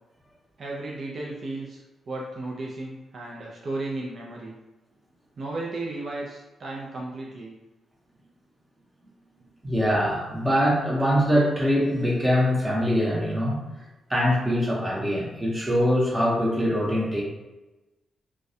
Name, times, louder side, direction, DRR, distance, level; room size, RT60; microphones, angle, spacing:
voice 1, 0.6-1.8 2.1-4.6 5.4-7.6, right 2 dB, 55° right, -3 dB, 0.4 m, -34 dB
voice 2, 9.6-13.6 14.1-17.2, equal, 15° right, -4 dB, 0.8 m, -23 dB
2.3 x 2.1 x 2.6 m, 1.1 s
cardioid pair, 65°, 0 cm